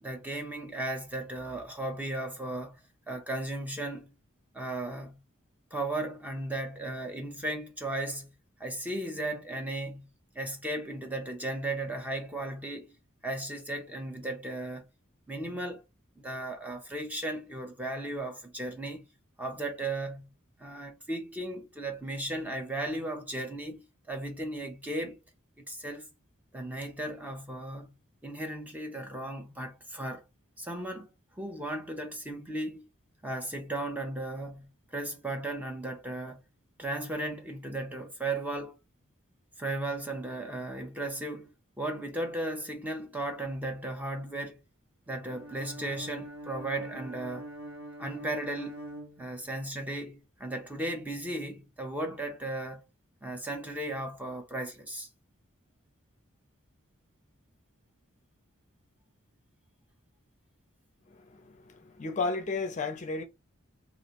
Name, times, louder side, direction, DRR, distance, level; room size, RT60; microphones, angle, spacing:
voice 1, 0.0-2.8 3.1-4.1 4.5-5.2 5.7-8.3 8.6-10.1 10.3-13.0 13.2-14.9 15.3-15.8 16.2-19.0 19.4-20.3 20.6-25.2 25.6-26.1 26.5-27.9 28.2-30.2 30.6-31.1 31.4-32.9 33.2-36.4 36.8-38.8 39.6-44.6 45.1-47.5 48.0-48.8 49.2-52.8 53.2-55.1, right 1 dB, 10° right, 0.7 m, -36 dB
Bowed string instrument, 45.2-49.8, right 1 dB, 70° right, 1.1 m, -44 dB
voice 2, 61.1-63.2, left 3 dB, 35° left, 0.6 m, -33 dB
3.1 x 2.5 x 2.9 m
head